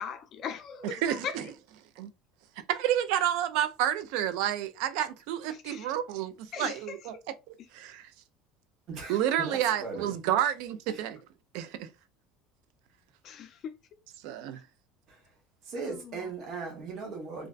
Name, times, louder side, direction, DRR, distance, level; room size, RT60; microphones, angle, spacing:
voice 1, 0.0-1.4 5.7-5.9 6.5-7.0 9.3-9.4 13.2-13.8 15.8-16.3, left 7 dB, 45° left, 0.4 m, -39 dB
voice 2, 0.8-1.5 2.0-2.1 2.7-8.1 9.1-11.2 11.5-11.9 14.2-14.6, right 11 dB, 70° right, 0.3 m, -30 dB
voice 3, 8.9-10.1 10.9-11.0 15.7-17.5, right 4 dB, 45° right, 0.9 m, -38 dB
2.4 x 2.2 x 2.3 m
cardioid pair, 145°, 0 cm